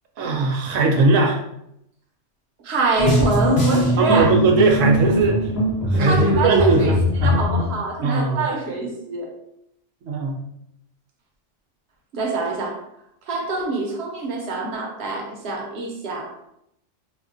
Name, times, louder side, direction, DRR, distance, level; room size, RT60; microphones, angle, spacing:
voice 1, 0.2-1.4 4.0-5.4 5.9-7.3 8.0-8.5 10.0-10.4, right 3 dB, 85° right, 2 dB, 1.0 m, -19 dB
voice 2, 2.6-4.4 6.0-7.0 7.2-9.3 12.1-12.8 13.3-16.3, right 3 dB, 60° right, 0 dB, 1.0 m, -25 dB
sound 1, 3.0-7.8, equal, 55° left, 1.2 m, -21 dB
4.2 x 2.2 x 2.5 m, 0.78 s
omnidirectional pair, 1.3 m